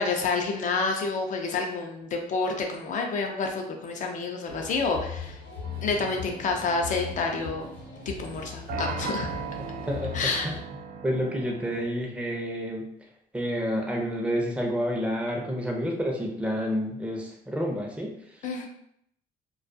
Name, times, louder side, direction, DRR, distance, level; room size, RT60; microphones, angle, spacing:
voice 1, 0.0-5.4 5.8-7.7 8.1-9.3 10.1-10.5 18.4-18.7, left 4 dB, 50° left, 3 dB, 0.5 m, -29 dB
sound 1, 4.5-10.6, left 6 dB, 90° left, 0.8 m, -39 dB
sound 2, 5.6-11.9, right 6 dB, 55° right, 0.4 m, -39 dB
voice 2, 9.9-10.5 11.0-12.9 13.3-18.1, equal, 5° right, -1 dB, 0.6 m, -29 dB
2.3 x 2.3 x 2.5 m, 0.71 s
cardioid pair, 110°, 17 cm